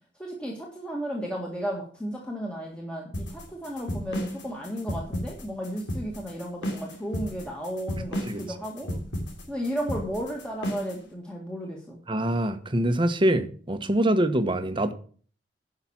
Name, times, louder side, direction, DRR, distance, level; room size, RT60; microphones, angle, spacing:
voice 1, 0.2-8.9 9.5-12.0, equal, 5° left, -2 dB, 1.7 m, -34 dB
sound 1, 3.1-11.0, equal, 80° left, 3.0 m, -33 dB
voice 2, 12.1-14.9, right 1 dB, 25° right, 10 dB, 1.0 m, -24 dB
10.5 x 5.9 x 7.2 m, 0.43 s
head